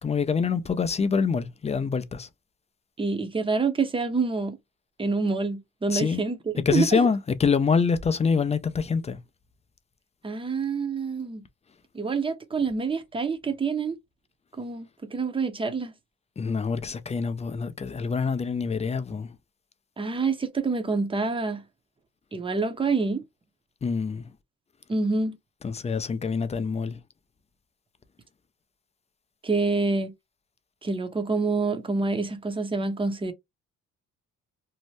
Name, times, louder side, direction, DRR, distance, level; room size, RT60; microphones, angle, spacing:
voice 1, 0.0-2.3 5.9-6.3 6.7-9.2 16.4-19.4 23.8-24.3 25.6-27.0, left 5 dB, 20° left, 0.4 m, -25 dB
voice 2, 3.0-4.6 5.0-6.4 6.7-7.0 10.2-11.4 11.9-14.0 14.6-15.9 20.0-21.6 22.3-23.2 24.9-25.4 29.4-30.1 30.8-33.3, right 4 dB, 15° right, 0.7 m, -27 dB
2.7 x 2.1 x 3.1 m
cardioid pair, 90°, 30 cm